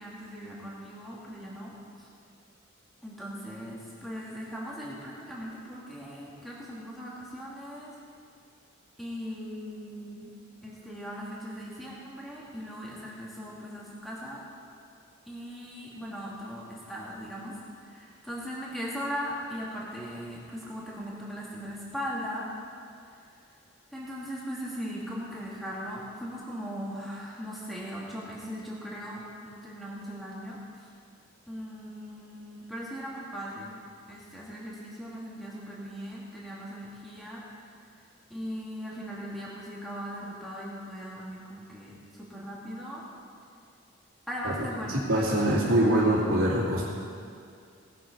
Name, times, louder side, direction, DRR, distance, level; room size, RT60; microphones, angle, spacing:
voice 1, 0.0-2.1 3.0-7.9 9.0-10.3 10.6-14.4 15.3-17.5 17.8-22.5 23.9-30.9 31.5-33.8 34.1-37.4 38.3-43.0 44.3-46.0, equal, ahead, -6 dB, 2.4 m, -39 dB
voice 2, 44.9-46.8, right 1 dB, 80° right, -10 dB, 2.7 m, -24 dB
19.0 x 7.6 x 5.4 m, 2.5 s
head